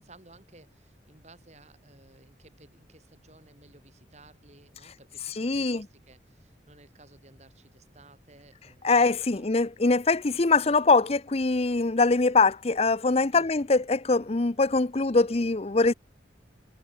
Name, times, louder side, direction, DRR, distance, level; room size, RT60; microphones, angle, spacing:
voice 1, 0.0-9.5 13.3-13.5, right 2 dB, 40° right, 6.5 m, -56 dB
voice 2, 5.4-5.8 8.8-15.9, left 3 dB, 35° left, 0.7 m, -23 dB
head